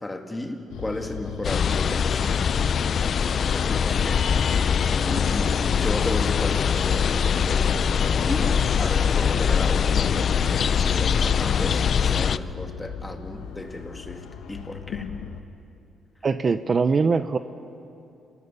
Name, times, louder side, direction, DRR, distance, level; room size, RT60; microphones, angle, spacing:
voice 1, 0.0-2.5 3.3-4.2 4.9-7.7 8.2-10.2 10.5-15.1, left 1 dB, 15° left, 4 dB, 2.3 m, -34 dB
sound 1, 0.7-15.4, left 7 dB, 85° left, 1.3 m, -37 dB
sound 2, 1.4-12.4, left 7 dB, 55° left, 0.5 m, -22 dB
voice 2, 16.2-17.4, right 4 dB, 40° right, 11 dB, 0.7 m, -22 dB
28.5 x 18.0 x 6.9 m, 2.7 s
cardioid pair, 90°, 0 cm